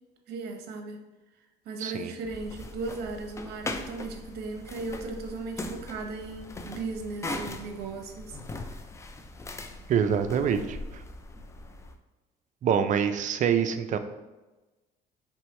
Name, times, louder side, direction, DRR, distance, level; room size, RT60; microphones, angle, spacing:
voice 1, 0.3-1.0 1.6-8.8, right 3 dB, 75° right, 4 dB, 0.8 m, -37 dB
voice 2, 1.8-2.1 9.9-11.0 12.6-14.0, right 8 dB, 50° right, 9 dB, 0.4 m, -26 dB
sound 1, 2.2-11.9, left 2 dB, 15° left, 0.4 m, -40 dB
4.4 x 3.4 x 3.2 m, 1.1 s
cardioid pair, 110°, 17 cm